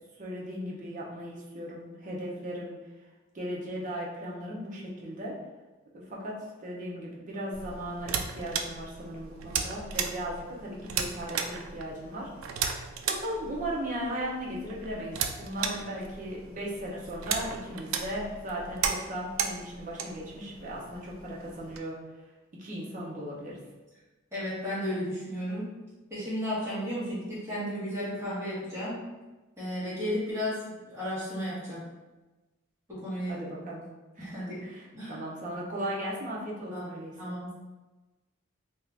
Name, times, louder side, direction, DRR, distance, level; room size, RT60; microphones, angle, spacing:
voice 1, 0.2-2.8 3.3-5.4 5.9-12.7 13.0-22.0 22.5-23.6 33.3-33.8 34.2-37.3, equal, 40° right, -4 dB, 0.7 m, -37 dB
sound 1, 7.5-21.8, right 6 dB, 70° right, 0.3 m, -36 dB
voice 2, 24.3-25.7 26.1-29.0 29.6-31.8 32.9-33.4 34.2-34.6 34.9-35.2 36.7-36.9 37.2-37.5, equal, 15° right, -10 dB, 1.3 m, -34 dB
2.7 x 2.4 x 3.4 m, 1.2 s
head